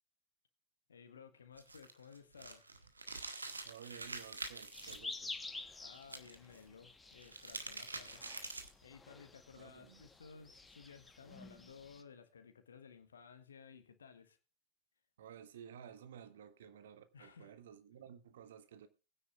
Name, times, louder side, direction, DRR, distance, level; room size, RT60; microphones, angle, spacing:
voice 1, 0.9-2.7 5.8-8.4 8.8-14.4 17.1-17.5, left 6 dB, 70° left, 1.5 m, -57 dB
sound 1, 1.5-5.0 6.0-6.6 7.1-8.8, right 3 dB, 80° right, 1.6 m, -46 dB
voice 2, 3.6-5.3 9.5-10.1 15.2-18.9, right 8 dB, 60° right, 1.4 m, -54 dB
sound 2, 4.7-12.0, left 3 dB, 10° left, 1.2 m, -50 dB
20.5 x 9.7 x 2.5 m
figure-of-eight pair, 90°, 0 cm